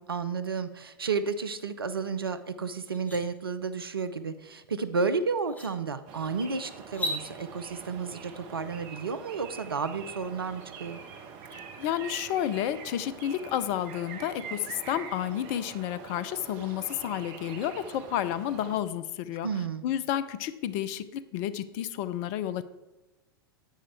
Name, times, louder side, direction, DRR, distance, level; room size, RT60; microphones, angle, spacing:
voice 1, 0.1-11.0 19.4-19.9, right 5 dB, 80° right, 11 dB, 0.7 m, -32 dB
sound 1, 2.3-2.4 2.8-3.2 4.8-4.9 5.4-5.7 6.8-7.2, equal, 15° left, 2.1 m, -34 dB
sound 2, 6.1-18.8, right 6 dB, 45° right, 1.2 m, -44 dB
voice 2, 11.5-19.5 19.8-22.6, left 11 dB, 45° left, 14 dB, 0.6 m, -31 dB
10.0 x 8.6 x 3.5 m, 1.1 s
figure-of-eight pair, 90°, 12 cm